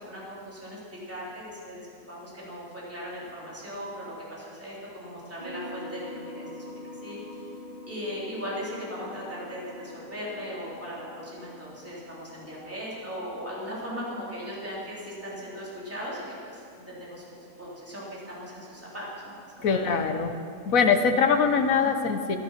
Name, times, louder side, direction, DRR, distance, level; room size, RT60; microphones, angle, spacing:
voice 1, 0.0-1.8 2.1-6.5 7.0-7.4 7.9-20.1 21.8-21.9, equal, 10° right, -7 dB, 3.7 m, -38 dB
sound 1, 5.4-17.8, left 1 dB, 30° right, 3.9 m, -46 dB
voice 2, 19.6-20.3 20.7-22.4, left 5 dB, 65° left, 7 dB, 1.3 m, -22 dB
15.0 x 11.5 x 5.9 m, 2.4 s
omnidirectional pair, 1.6 m